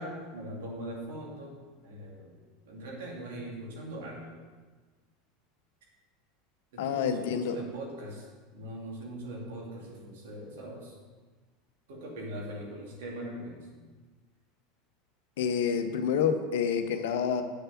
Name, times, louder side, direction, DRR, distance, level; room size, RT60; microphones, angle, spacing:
voice 1, 0.0-1.6 1.8-2.3 2.7-4.2 6.7-8.2 8.5-10.9 11.9-13.7, right 1 dB, 65° right, -2 dB, 2.7 m, -41 dB
voice 2, 6.8-7.6 15.4-17.4, left 7 dB, 65° left, 8 dB, 0.8 m, -28 dB
8.1 x 6.7 x 5.8 m, 1.4 s
figure-of-eight pair, 80°, 0 cm